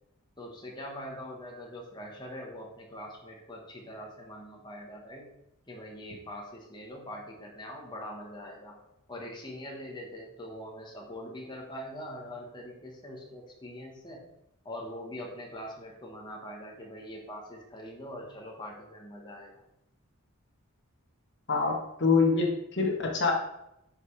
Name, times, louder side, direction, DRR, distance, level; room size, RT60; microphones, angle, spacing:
voice 1, 0.4-5.3 5.7-8.8 9.1-14.2 14.6-19.5, equal, 20° left, -2 dB, 1.3 m, -43 dB
voice 2, 21.5-23.3, left 4 dB, 50° left, 0 dB, 1.3 m, -25 dB
10.5 x 5.2 x 3.3 m, 0.84 s
head